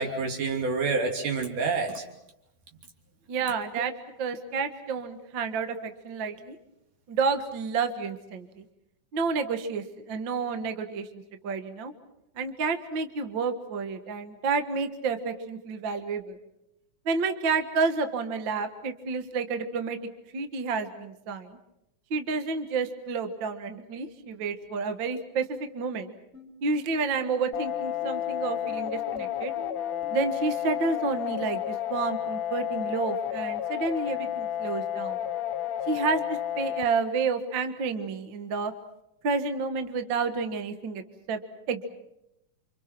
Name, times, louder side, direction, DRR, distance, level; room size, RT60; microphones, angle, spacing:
voice 1, 0.0-2.0, right 4 dB, 75° right, 3 dB, 4.5 m, -28 dB
voice 2, 3.3-3.9 4.2-6.6 7.1-8.7 9.1-11.9 12.4-16.4 17.1-20.0 20.3-21.6 22.1-26.1 26.6-29.5 30.1-35.2 35.9-38.7 39.2-41.4 41.7-41.9, right 4 dB, 45° right, 8 dB, 1.8 m, -30 dB
sound 1, 26.3-31.4, equal, 20° right, 5.1 m, -48 dB
sound 2, 27.5-36.9, left 11 dB, 65° left, 2.0 m, -31 dB
29.0 x 26.0 x 6.1 m, 0.87 s
omnidirectional pair, 3.7 m